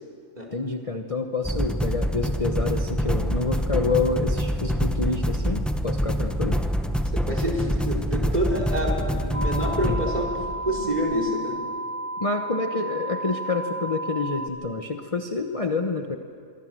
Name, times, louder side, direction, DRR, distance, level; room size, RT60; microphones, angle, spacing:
voice 1, 0.5-6.6 9.8-10.0 12.2-16.2, left 3 dB, 30° left, 5 dB, 1.0 m, -28 dB
sound 1, 1.4-11.1, equal, ahead, 1.0 m, -26 dB
voice 2, 7.1-10.3 10.6-11.6, equal, 30° right, 1 dB, 4.5 m, -27 dB
sound 2, 9.3-14.5, right 1 dB, 70° right, 2.1 m, -33 dB
25.0 x 24.0 x 7.6 m, 2.4 s
omnidirectional pair, 1.4 m